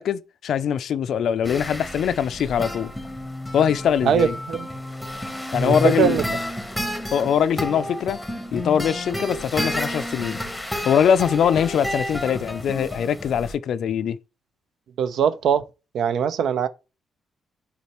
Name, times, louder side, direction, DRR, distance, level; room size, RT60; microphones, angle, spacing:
voice 1, 0.0-2.9 3.5-4.3 5.5-6.2 7.1-8.2 8.5-10.4 10.8-14.2, left 8 dB, 60° left, 0.4 m, -22 dB
sound 1, 1.4-13.5, left 1 dB, ahead, 0.9 m, -31 dB
voice 2, 4.0-4.7 5.6-6.2 15.0-15.6 15.9-16.7, right 8 dB, 65° right, 0.5 m, -21 dB
8.3 x 4.2 x 3.0 m
cardioid pair, 155°, 0 cm